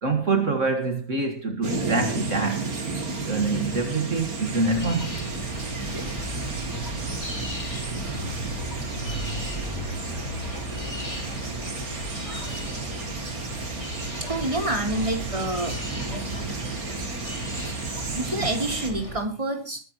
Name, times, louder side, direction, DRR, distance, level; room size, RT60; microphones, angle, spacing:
voice 1, 0.0-2.8 3.3-5.4, right 3 dB, 60° right, 2.1 m, -25 dB
sound 1, 1.6-18.9, right 3 dB, 85° right, 2.9 m, -33 dB
sound 2, 2.8-18.2, left 1 dB, 70° left, 3.2 m, -40 dB
sound 3, 4.6-19.2, right 1 dB, 20° left, 3.3 m, -37 dB
voice 2, 14.3-15.8 18.1-19.8, right 1 dB, 20° right, 3.5 m, -27 dB
22.5 x 11.5 x 3.0 m
omnidirectional pair, 1.5 m